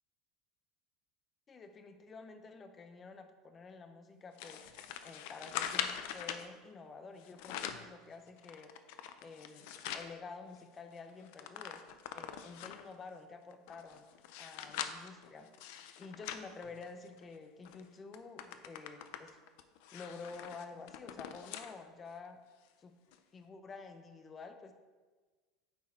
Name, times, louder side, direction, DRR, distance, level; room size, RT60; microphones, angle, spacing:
voice 1, 1.5-4.6 5.0-8.7 9.2-9.7 9.9-11.8 12.1-14.1 14.4-15.5 16.0-19.4 19.9-22.4 22.8-22.9 23.3-24.7, left 4 dB, 20° left, 8 dB, 0.5 m, -50 dB
sound 1, 4.4-6.5 7.2-7.9 8.4-10.1 10.6-10.7 10.9-12.9 13.5-17.2 17.7-17.8 18.1-21.7 22.2-22.3 23.1-23.2, left 10 dB, 65° left, 0.5 m, -43 dB
9.3 x 4.4 x 4.3 m, 1.3 s
cardioid pair, 170°, 0 cm